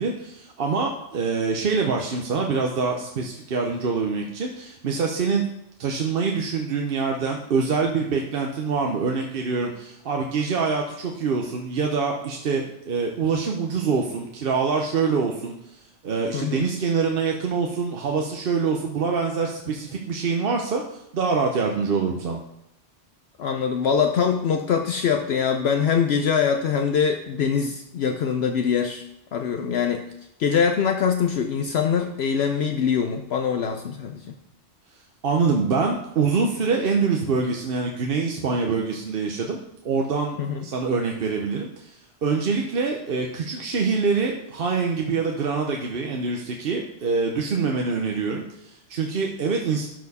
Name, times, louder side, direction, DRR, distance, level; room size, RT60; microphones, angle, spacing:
voice 1, 0.0-5.4 5.8-22.4 35.2-39.6 39.8-49.9, right 5 dB, 55° right, 1 dB, 0.9 m, -25 dB
voice 2, 16.3-16.6 23.4-29.0 29.3-30.0 30.4-34.4 40.4-40.6, left 7 dB, 65° left, 4 dB, 0.8 m, -23 dB
12.0 x 4.4 x 4.1 m, 0.82 s
omnidirectional pair, 1.2 m